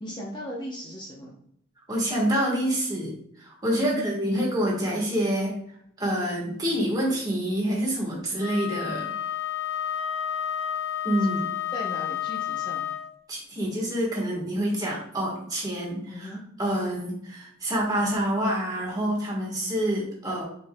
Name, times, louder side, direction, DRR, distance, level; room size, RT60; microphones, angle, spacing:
voice 1, 0.0-1.3 3.8-4.1 11.7-12.8 16.1-16.4, equal, 25° left, -3 dB, 0.7 m, -37 dB
voice 2, 1.9-5.6 6.0-9.0 11.0-11.5 13.3-20.4, equal, 20° right, -3 dB, 1.5 m, -27 dB
Wind instrument woodwind instrument, 8.4-13.1, left 9 dB, 75° left, 0.4 m, -30 dB
5.3 x 4.3 x 2.2 m, 0.69 s
head